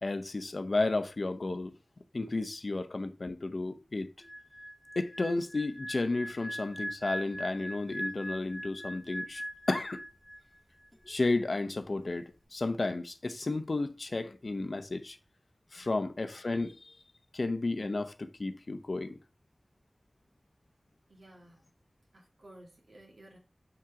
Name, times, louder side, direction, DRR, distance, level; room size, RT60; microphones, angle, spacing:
voice 1, 0.0-1.7 2.1-4.1 5.0-9.4 9.7-10.0 11.1-15.2 15.7-17.0 17.3-19.2, left 2 dB, 70° left, 0.7 m, -32 dB
sound 1, 4.2-10.6 10.8-11.1, equal, 10° left, 1.2 m, -41 dB
voice 2, 21.1-21.6 22.1-23.4, right 1 dB, 85° right, 2.4 m, -55 dB
6.1 x 4.7 x 3.6 m
wide cardioid pair, 40°, 0 cm